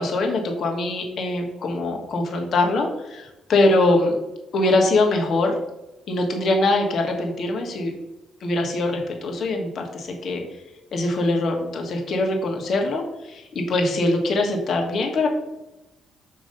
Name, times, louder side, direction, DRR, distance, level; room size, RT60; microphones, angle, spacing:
voice 1, 0.0-4.1 4.5-5.5 6.1-7.9 8.4-10.4 10.9-15.3, left 2 dB, 60° left, 2 dB, 1.3 m, -22 dB
6.6 x 3.1 x 5.2 m, 0.97 s
cardioid pair, 90°, 0 cm